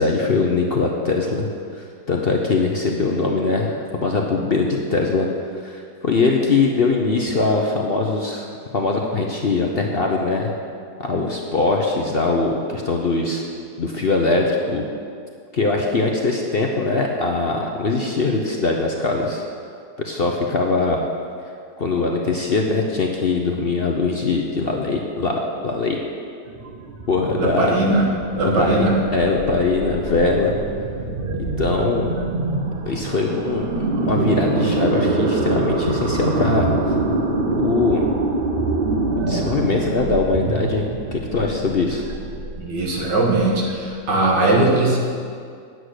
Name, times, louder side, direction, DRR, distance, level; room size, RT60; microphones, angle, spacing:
voice 1, 0.0-1.5 1.7-5.3 5.6-8.5 8.7-10.5 11.0-13.4 13.8-14.8 15.5-19.4 20.0-21.0 21.8-26.0 27.1-27.7 28.4-30.5 31.6-32.1 32.9-33.7 34.0-36.7 37.5-38.0 39.2-40.9 41.1-42.0, left 3 dB, 45° left, 0 dB, 0.8 m, -21 dB
sound 1, 26.5-44.3, right 2 dB, 45° right, 0.8 m, -25 dB
voice 2, 27.4-29.0 41.3-41.5 42.6-45.0, right 2 dB, 90° right, -1 dB, 2.3 m, -20 dB
9.3 x 8.0 x 6.5 m, 2.3 s
omnidirectional pair, 1.8 m